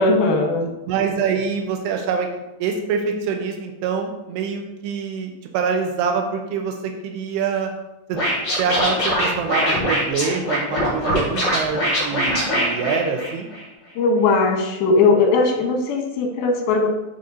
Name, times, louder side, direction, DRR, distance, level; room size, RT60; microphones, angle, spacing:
voice 1, 0.0-0.6 14.0-16.9, left 3 dB, 70° left, 2 dB, 2.7 m, -18 dB
voice 2, 0.6-2.3 2.6-7.7 8.1-8.2 8.6-13.5, right 6 dB, 80° right, 4 dB, 2.7 m, -25 dB
Scratching (performance technique), 8.1-13.6, equal, 35° left, 2.7 m, -22 dB
6.8 x 6.4 x 2.7 m, 0.95 s
omnidirectional pair, 4.8 m